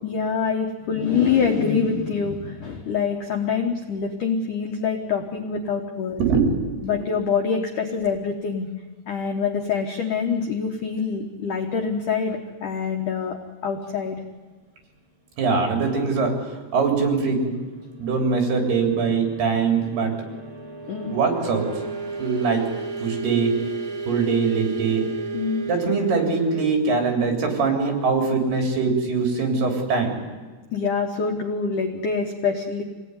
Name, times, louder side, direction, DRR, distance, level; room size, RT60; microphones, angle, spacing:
voice 1, 0.0-6.2 6.8-8.7 9.1-14.2 20.9-21.2 25.3-25.7 30.7-32.8, left 6 dB, 75° left, 3 dB, 1.9 m, -25 dB
voice 2, 6.2-6.6 15.4-17.6 18.0-20.1 21.1-21.7 22.2-22.7 23.0-23.6 24.1-25.1 25.7-30.2, right 4 dB, 55° right, 2 dB, 5.4 m, -22 dB
sound 1, 17.0-29.5, right 3 dB, 40° right, 4.4 m, -35 dB
26.0 x 18.0 x 9.8 m, 1.4 s
omnidirectional pair, 5.8 m